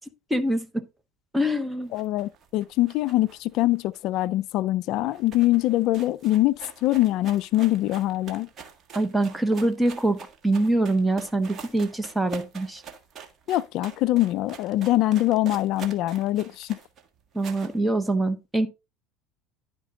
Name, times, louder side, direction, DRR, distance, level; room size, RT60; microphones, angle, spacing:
voice 1, 0.3-0.7 1.3-1.9 8.9-10.2 10.4-12.8 17.3-18.7, right 1 dB, 5° right, 1.0 m, -24 dB
voice 2, 1.9-8.5 13.5-16.8, left 16 dB, 60° left, 0.3 m, -23 dB
sound 1, 1.9-4.5 4.8-4.9 5.1-17.8, right 7 dB, 35° right, 1.7 m, -45 dB
11.0 x 5.0 x 3.8 m
supercardioid pair, 110°, 0 cm